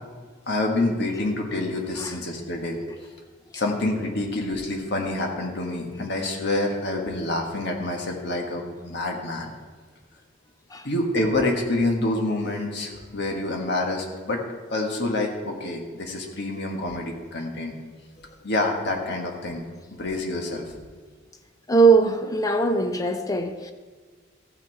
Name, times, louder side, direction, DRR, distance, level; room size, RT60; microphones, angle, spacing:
voice 1, 0.5-2.8 3.5-9.5 10.8-14.4 14.7-17.7 18.4-19.6 20.0-20.6, left 2 dB, 60° left, 1.5 m, -27 dB
voice 2, 21.7-23.7, right 4 dB, 20° left, 0.5 m, -20 dB
14.5 x 6.3 x 4.6 m
head